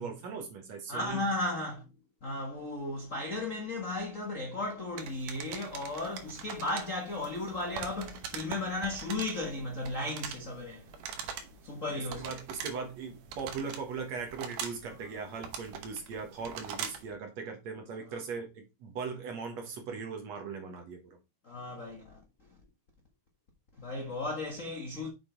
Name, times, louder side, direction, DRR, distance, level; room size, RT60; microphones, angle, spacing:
voice 1, 0.0-1.2 12.2-21.2, right 5 dB, 55° right, 2.2 m, -39 dB
voice 2, 0.9-1.9 2.2-11.0 11.6-12.4 21.4-22.2 23.8-25.1, left 2 dB, 80° left, 0.7 m, -35 dB
sound 1, 5.0-17.1, right 7 dB, 85° right, 3.0 m, -43 dB
6.8 x 6.1 x 4.0 m
omnidirectional pair, 4.2 m